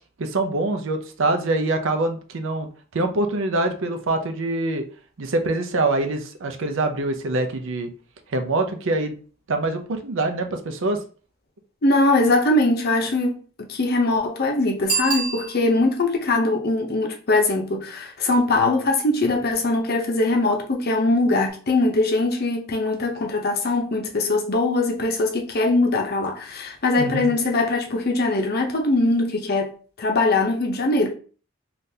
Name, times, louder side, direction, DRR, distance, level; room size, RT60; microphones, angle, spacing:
voice 1, 0.2-2.7 2.9-4.8 5.2-7.9 8.3-9.2 9.5-11.0 27.0-27.3, right 2 dB, 65° right, 0.5 m, -24 dB
voice 2, 11.8-13.4 13.7-29.7 30.0-31.1, left 2 dB, 50° left, 0.6 m, -21 dB
Bicycle bell, 14.8-16.0 21.5-21.6, right 4 dB, 40° right, 1.6 m, -27 dB
3.7 x 2.4 x 2.7 m
head